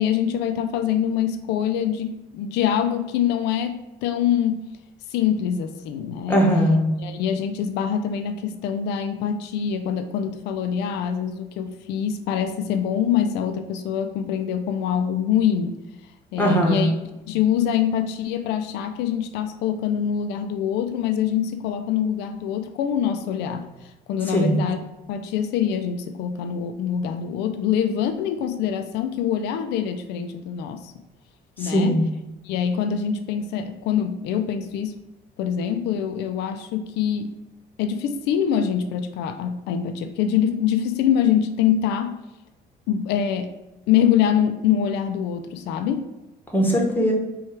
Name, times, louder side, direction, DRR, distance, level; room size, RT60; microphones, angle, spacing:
voice 1, 0.0-4.7 5.1-6.4 7.0-15.8 16.3-16.9 17.3-24.8 25.1-30.9 31.6-32.0 32.4-34.9 35.4-37.3 37.8-42.2 42.9-43.5 43.9-46.1, left 9 dB, 85° left, 7 dB, 0.4 m, -24 dB
voice 2, 6.3-6.9 16.4-16.9 24.3-24.6 31.6-32.1 46.5-47.1, equal, 10° left, 0 dB, 1.0 m, -19 dB
4.4 x 2.3 x 4.5 m, 1.0 s
cardioid pair, 110°, 17 cm